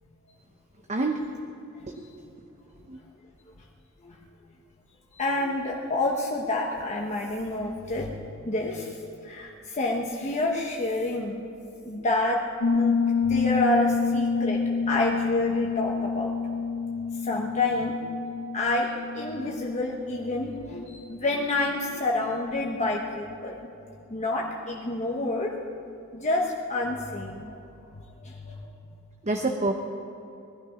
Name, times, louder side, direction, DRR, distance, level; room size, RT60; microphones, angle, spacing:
voice 1, 0.9-1.2 2.0-2.3 2.9-3.0 29.2-29.7, right 2 dB, 30° right, 3 dB, 0.8 m, -27 dB
voice 2, 5.1-9.0 9.2-11.4 11.8-12.4 12.7-13.0 13.3-16.3 17.2-18.0 18.5-23.5 24.1-25.6 26.1-27.5 28.2-28.6, left 2 dB, 35° left, -1 dB, 1.1 m, -28 dB
Piano, 12.6-21.1, left 5 dB, 75° left, 1.1 m, -28 dB
20.0 x 12.0 x 5.1 m, 2.8 s
head